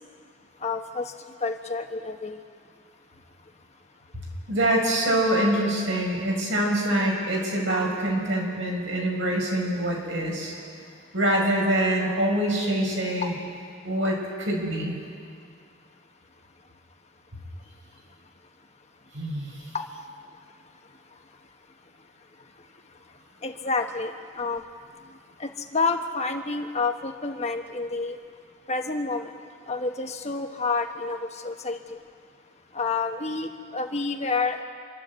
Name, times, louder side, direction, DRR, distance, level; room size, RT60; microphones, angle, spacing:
voice 1, 0.6-1.1 1.4-2.4 13.2-13.3 19.7-19.8 23.4-24.6 25.4-28.2 28.7-29.3 29.7-32.0 32.7-34.6, left 4 dB, 35° left, 4 dB, 1.3 m, -29 dB
voice 2, 4.5-10.5 11.1-13.3 13.8-15.0 19.1-19.5, right 1 dB, 85° right, -1 dB, 5.5 m, -25 dB
27.0 x 12.0 x 8.2 m, 2.2 s
head